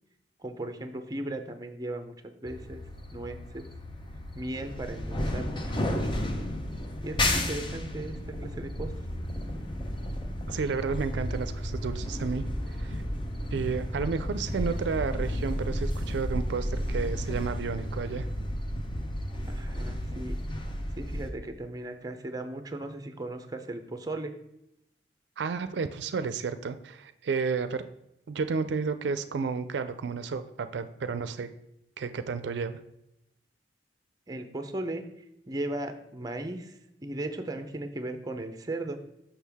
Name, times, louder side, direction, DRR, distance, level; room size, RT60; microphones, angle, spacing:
voice 1, 0.4-2.8 3.1-3.7 4.3-6.5 7.0-8.9 19.5-20.4 21.0-24.3 34.3-35.0 35.5-36.8 37.0-39.0, right 2 dB, 20° right, 7 dB, 0.5 m, -37 dB
sound 1, 2.4-21.3, left 1 dB, 25° left, 0.7 m, -33 dB
voice 2, 10.5-12.4 12.8-13.0 13.5-18.3 25.4-27.8 28.3-31.5 32.0-32.8, right 5 dB, 70° right, 11 dB, 0.4 m, -31 dB
6.4 x 5.8 x 3.4 m, 0.86 s
head